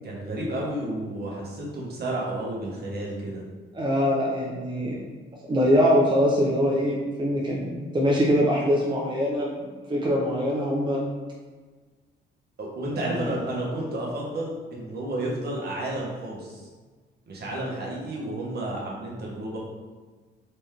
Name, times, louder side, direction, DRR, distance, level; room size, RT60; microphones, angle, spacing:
voice 1, 0.0-3.4 12.6-16.7 17.3-19.6, right 1 dB, 55° right, -4 dB, 1.4 m, -31 dB
voice 2, 3.7-5.0 5.5-9.5 9.9-11.0 12.9-13.4, equal, 25° right, -4 dB, 0.8 m, -23 dB
4.1 x 3.5 x 3.4 m, 1.4 s
cardioid pair, 90°, 20 cm